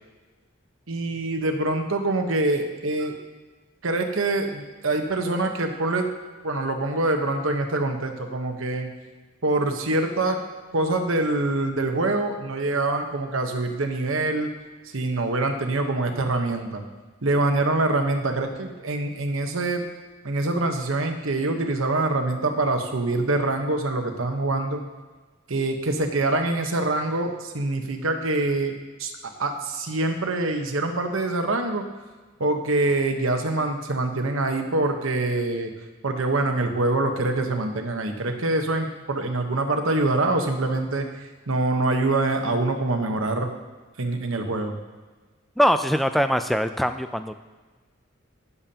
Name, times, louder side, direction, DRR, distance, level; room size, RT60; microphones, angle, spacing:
voice 1, 0.9-3.1 3.8-6.1 6.4-8.9 9.4-10.4 10.7-14.5 14.9-16.8 17.2-19.8 20.2-24.8 25.5-28.7 29.0-29.1 29.4-31.9 32.4-35.7 36.0-41.1 41.5-43.5 44.0-44.7, right 2 dB, 85° right, 5 dB, 1.0 m, -25 dB
voice 2, 45.6-47.3, equal, ahead, 9 dB, 0.3 m, -22 dB
15.5 x 7.0 x 2.9 m, 1.3 s
head